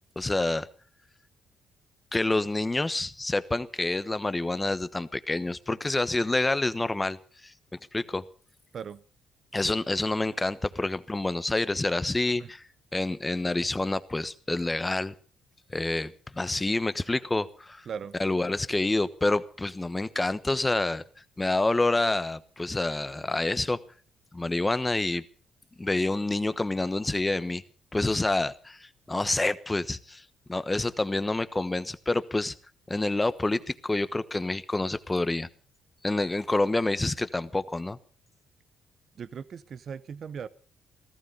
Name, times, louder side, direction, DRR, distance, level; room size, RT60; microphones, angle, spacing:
voice 1, 0.2-0.7 2.1-7.5 7.9-8.2 9.5-12.6 12.9-15.1 15.7-17.9 18.2-21.0 21.4-23.8 24.3-25.2 25.8-27.6 27.9-30.2 30.5-32.5 32.9-35.5 36.0-38.0, left 2 dB, 20° left, 1.1 m, -28 dB
voice 2, 39.2-40.5, right 7 dB, 55° right, 0.7 m, -38 dB
17.0 x 14.5 x 5.4 m
cardioid pair, 75°, 0 cm